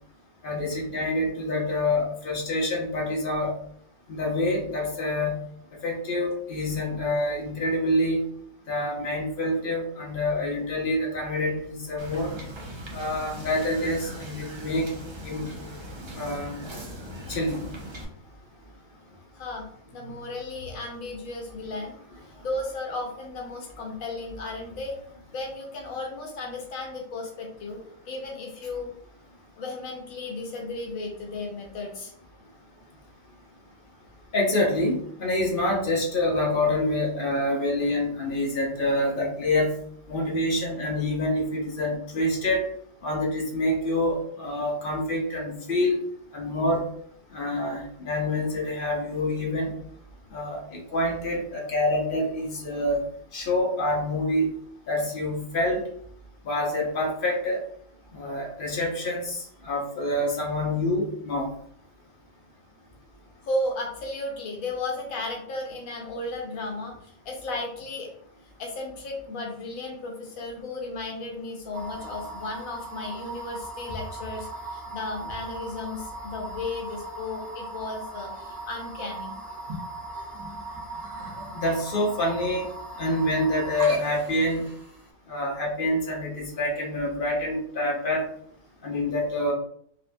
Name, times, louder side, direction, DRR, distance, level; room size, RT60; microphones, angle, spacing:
voice 1, 0.4-3.5 4.1-5.4 5.8-8.2 8.7-12.3 12.9-14.9 15.2-15.5 16.1-16.6 17.3-17.6 34.3-39.8 40.1-42.7 43.0-46.0 46.3-46.8 47.3-49.7 50.3-53.0 53.3-54.5 54.9-55.8 56.4-57.6 58.1-61.5 81.5-82.7 83.0-84.6 85.3-88.2 88.8-89.5, left 1 dB, 45° left, -1 dB, 0.8 m, -26 dB
Wind / Boat Water vehicle, 12.0-18.0, equal, 50° right, 0.3 m, -40 dB
voice 2, 19.3-22.0 22.4-25.0 25.3-29.0 29.6-32.1 63.4-68.1 68.6-79.4, left 2 dB, 80° left, 1 dB, 1.1 m, -34 dB
sound 1, 71.7-85.1, right 2 dB, 70° right, 1.3 m, -38 dB
4.1 x 2.6 x 2.2 m, 0.66 s
omnidirectional pair, 1.4 m